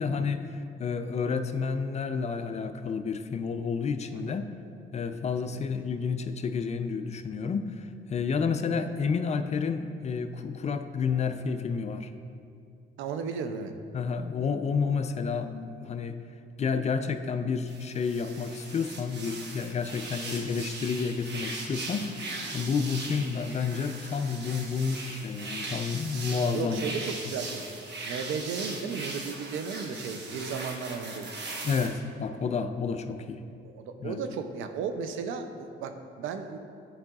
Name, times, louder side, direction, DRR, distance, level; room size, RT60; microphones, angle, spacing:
voice 1, 0.0-4.4 4.9-12.1 13.9-16.2 16.6-22.2 22.5-26.8 31.6-33.4 34.0-34.2, left 5 dB, 35° left, 9 dB, 0.4 m, -30 dB
voice 2, 13.0-13.7 20.5-20.6 26.5-27.6 28.0-31.3 33.6-36.6, right 5 dB, 90° right, 7 dB, 0.5 m, -35 dB
sound 1, 17.7-31.9, right 2 dB, 60° right, 1.0 m, -39 dB
10.0 x 4.8 x 2.4 m, 2.5 s
cardioid pair, 90°, 20 cm